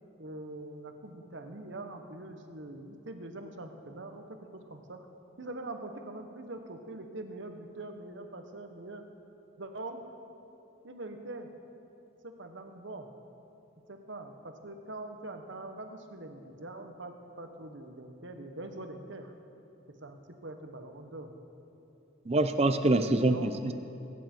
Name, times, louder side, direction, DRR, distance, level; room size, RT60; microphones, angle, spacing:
voice 1, 0.2-4.4 4.7-5.0 5.4-9.0 9.6-10.0 10.8-11.5 12.2-13.1 13.9-19.3 19.9-21.3 23.3-23.6, right 2 dB, 70° right, 6 dB, 1.2 m, -43 dB
voice 2, 22.3-23.7, right 2 dB, 30° right, 8 dB, 0.6 m, -25 dB
23.0 x 9.4 x 4.5 m, 2.8 s
head